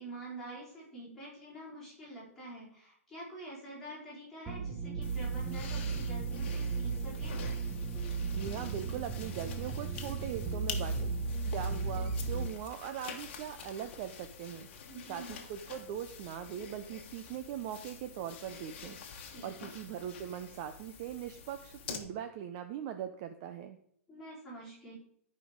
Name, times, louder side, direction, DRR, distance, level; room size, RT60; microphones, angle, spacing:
voice 1, 0.0-7.4 14.9-15.3 19.3-19.7 24.1-24.9, right 1 dB, 5° left, -9 dB, 4.5 m, -47 dB
sound 1, 4.5-12.5, right 4 dB, 10° right, 1.0 m, -35 dB
sound 2, 5.0-22.0, left 6 dB, 45° left, 1.5 m, -48 dB
voice 2, 8.2-11.1 11.5-14.7 15.1-23.8, right 9 dB, 30° right, 8 dB, 0.5 m, -41 dB
11.5 x 5.2 x 5.1 m, 0.66 s
hypercardioid pair, 160°, 8 cm